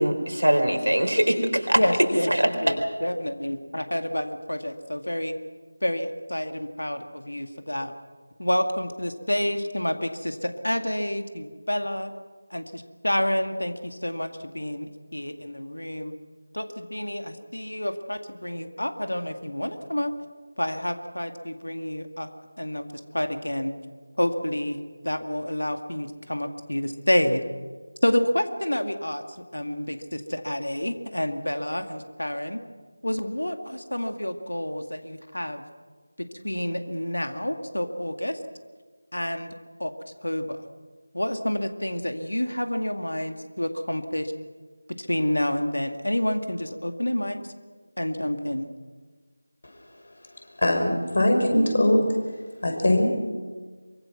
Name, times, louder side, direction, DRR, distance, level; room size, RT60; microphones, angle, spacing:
voice 1, 0.0-1.8 2.3-2.7, right 1 dB, 80° right, 5 dB, 4.1 m, -22 dB
voice 2, 1.8-2.3 2.6-5.3 5.8-7.9 8.4-12.1 12.5-16.1 16.5-20.1 20.6-22.3 22.6-22.9 23.1-23.7 24.2-24.8 25.0-27.4 28.0-29.3 29.5-32.6 33.0-35.6 36.2-38.4 39.1-39.5 39.8-39.9 40.2-40.6 41.1-44.3 45.0-47.4 48.0-48.7, left 1 dB, 80° left, 7 dB, 2.2 m, -28 dB
voice 3, 50.6-52.1 52.6-53.1, left 1 dB, 50° left, 3 dB, 5.6 m, -21 dB
24.0 x 24.0 x 6.1 m, 1.5 s
figure-of-eight pair, 165°, 0 cm